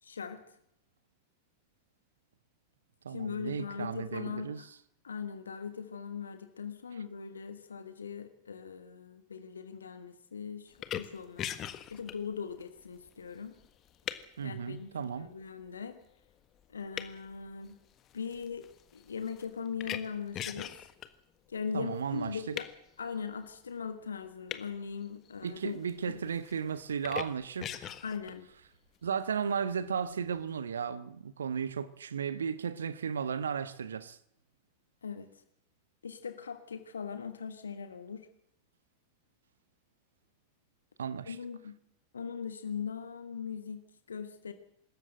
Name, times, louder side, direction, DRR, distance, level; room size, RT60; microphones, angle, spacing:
voice 1, 0.0-0.6 3.1-4.7 5.0-11.5 11.9-13.6 14.4-16.0 16.7-17.8 18.1-20.8 21.5-22.7 23.0-26.1 28.0-28.5 35.0-35.4 36.0-38.3 41.2-41.8 42.1-44.5, left 6 dB, 70° left, 1.4 m, -40 dB
voice 2, 3.0-4.6 14.4-15.3 21.7-22.6 25.4-27.9 29.0-34.2 41.0-41.4, right 7 dB, 70° right, 1.0 m, -35 dB
sound 1, 10.7-14.4 15.0-15.4 16.1-16.3 16.6-21.1 22.0-22.7 24.5-24.7 25.0-26.1 26.3-27.2 27.6-28.3, left 11 dB, 30° left, 1.5 m, -40 dB
24.5 x 14.0 x 7.8 m
figure-of-eight pair, 90°, 0 cm